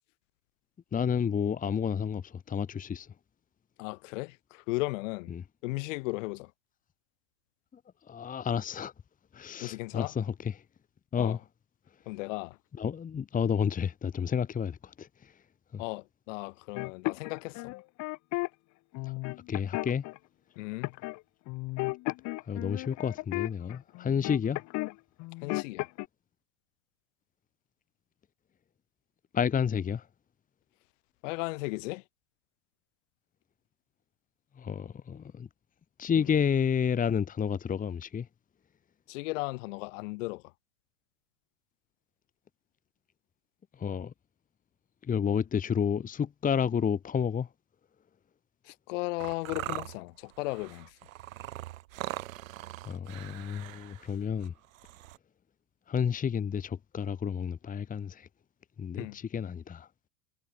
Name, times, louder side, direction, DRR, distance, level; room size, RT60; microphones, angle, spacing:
voice 1, 0.9-3.1 5.3-5.4 8.1-8.9 9.3-10.5 11.1-11.4 12.8-15.1 15.7-15.8 19.5-20.0 22.5-24.6 29.3-30.0 34.6-35.5 36.0-38.3 43.8-44.1 45.1-47.5 52.9-54.5 55.9-58.3 58.8-59.9, left 7 dB, 20° left, 1.5 m, -30 dB
voice 2, 3.8-5.3 5.6-6.5 9.6-10.1 11.2-11.4 12.1-12.6 15.8-17.7 20.6-21.0 25.4-25.9 31.2-32.0 36.2-36.3 39.1-40.4 48.6-50.9 59.0-59.2, left 24 dB, 70° left, 4.1 m, -36 dB
sound 1, 16.7-18.5 18.9-20.2 20.8-21.2 21.5-24.9 25.2-26.0, left 22 dB, 45° left, 0.9 m, -34 dB
sound 2, 49.2-55.2, right 16 dB, 80° right, 3.2 m, -41 dB
supercardioid pair, 120°, 39 cm